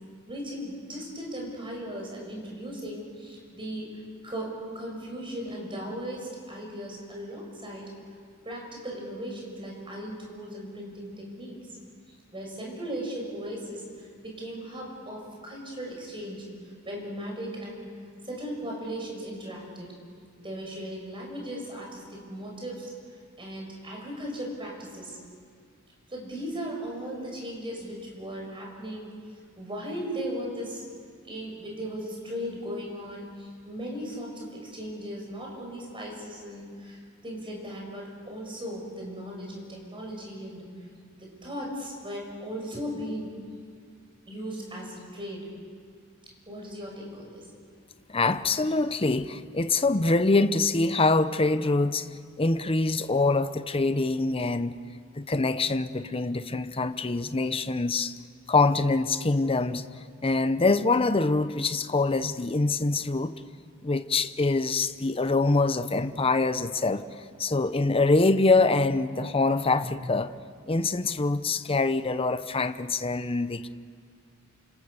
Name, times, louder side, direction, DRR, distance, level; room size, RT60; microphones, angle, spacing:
voice 1, 0.3-3.9 4.2-7.9 8.4-11.6 12.3-16.5 16.8-17.9 18.2-19.9 20.4-22.9 23.4-25.2 26.1-29.1 29.6-30.8 31.2-40.6 41.1-43.3 44.3-45.4 46.5-47.5, equal, 25° right, 6.7 m, -37 dB
voice 2, 48.1-52.1 52.4-54.7 55.2-58.1 58.5-59.8 60.2-63.3 63.8-67.0 67.4-70.3 70.7-73.7, left 3 dB, 25° left, 0.8 m, -24 dB
29.5 x 27.0 x 6.8 m
head